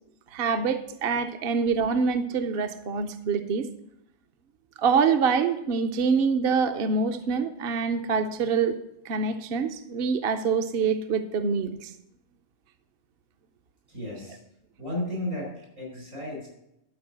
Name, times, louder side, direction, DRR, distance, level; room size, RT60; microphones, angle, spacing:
voice 1, 0.3-3.7 4.8-8.8 9.0-11.9, right 5 dB, 55° right, 7 dB, 0.8 m, -25 dB
voice 2, 13.9-14.4 14.8-16.5, left 1 dB, 85° right, 0 dB, 5.2 m, -34 dB
12.0 x 5.0 x 7.4 m, 0.82 s
omnidirectional pair, 1.3 m